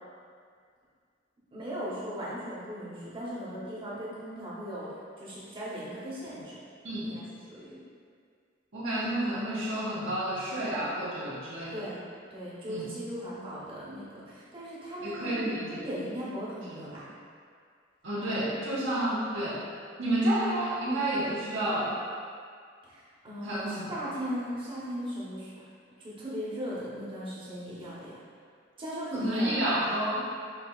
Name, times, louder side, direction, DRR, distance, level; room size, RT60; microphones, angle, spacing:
voice 1, 1.5-6.6 7.0-7.2 7.5-7.8 11.7-17.1 22.9-25.7 26.2-28.1 28.8-29.7, equal, 30° right, -9 dB, 1.0 m, -38 dB
voice 2, 8.7-11.8 12.7-12.9 15.0-15.8 18.0-19.6 20.0-21.9 23.4-23.9 29.2-30.2, right 1 dB, 75° right, -9 dB, 1.3 m, -30 dB
6.1 x 2.8 x 2.4 m, 2.1 s
head